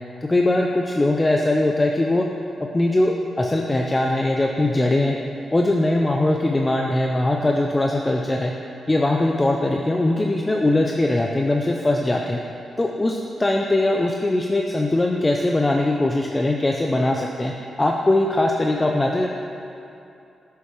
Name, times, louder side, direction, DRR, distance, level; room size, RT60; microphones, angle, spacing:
voice 1, 0.2-2.3 2.6-5.2 5.5-8.5 8.9-12.4 12.8-17.5 17.8-19.3, left 2 dB, 20° left, 1 dB, 0.5 m, -21 dB
8.9 x 6.8 x 3.2 m, 2.8 s
cardioid pair, 80°, 0 cm